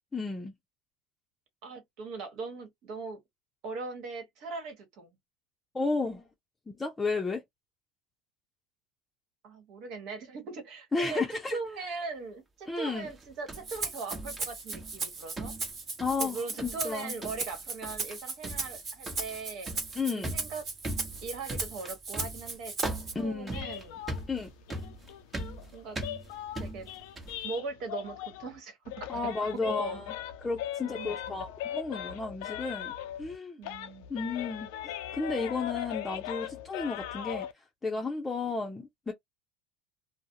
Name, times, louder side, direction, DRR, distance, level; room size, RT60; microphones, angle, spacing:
voice 1, 0.1-0.5 5.7-6.2 6.7-7.4 10.9-11.6 12.7-13.1 16.0-17.1 20.0-20.3 23.1-23.6 24.3-24.5 29.1-30.1 30.4-32.9 33.2-33.6 34.1-34.7 35.1-37.5 37.8-39.1, left 3 dB, 20° left, 0.6 m, -33 dB
voice 2, 1.6-3.2 3.6-5.2 9.4-11.2 11.5-15.5 16.2-19.7 20.1-20.6 21.2-22.9 23.2-24.0 25.7-26.0 26.6-26.9 27.4-30.0 30.8-31.5 33.6-34.2, right 4 dB, 65° right, 1.1 m, -40 dB
sound 1, 13.1-15.1 15.4-16.3 16.6-16.9 17.2-17.6 17.8-18.2 18.4-27.4, right 1 dB, 25° right, 1.0 m, -40 dB
Rattle (instrument), 13.5-23.1, right 4 dB, 40° right, 1.3 m, -37 dB
sound 2, 23.5-28.6 28.9-33.4 33.6-37.5, left 11 dB, 75° left, 0.4 m, -39 dB
2.3 x 2.0 x 2.8 m
supercardioid pair, 95°, 0 cm